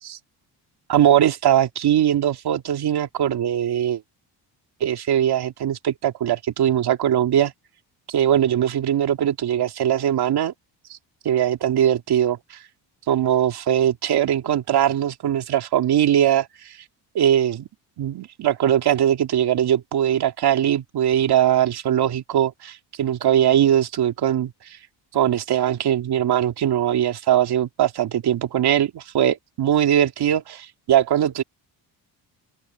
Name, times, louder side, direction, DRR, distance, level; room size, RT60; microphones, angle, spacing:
voice 1, 0.9-4.0 4.8-7.5 8.1-10.5 10.9-11.0 11.2-12.6 13.1-16.8 17.1-17.7 18.0-24.8 25.1-31.4, right 10 dB, 60° right, 2.4 m, -21 dB
open air
cardioid pair, 145°, 44 cm